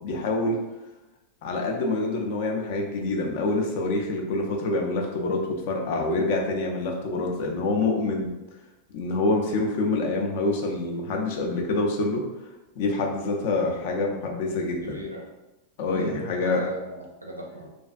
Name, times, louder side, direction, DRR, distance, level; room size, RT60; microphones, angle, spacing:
voice 1, 0.0-0.6 1.4-8.3 8.9-12.3 12.8-15.0 15.8-16.6, left 2 dB, 50° left, 1 dB, 0.4 m, -26 dB
voice 2, 14.8-15.2 15.9-17.7, right 1 dB, 85° right, -1 dB, 0.4 m, -37 dB
2.5 x 2.4 x 2.3 m, 1.0 s
figure-of-eight pair, 90°, 0 cm